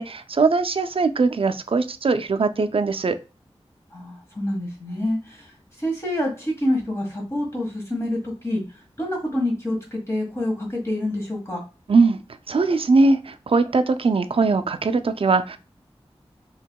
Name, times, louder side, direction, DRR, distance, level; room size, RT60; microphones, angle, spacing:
voice 1, 0.0-3.2 11.9-12.2 12.5-15.6, right 3 dB, 60° right, 9 dB, 0.4 m, -20 dB
voice 2, 3.9-8.6 9.0-11.6, left 1 dB, 25° left, -1 dB, 1.3 m, -27 dB
4.5 x 2.9 x 2.2 m, 0.31 s
wide cardioid pair, 45°, 11 cm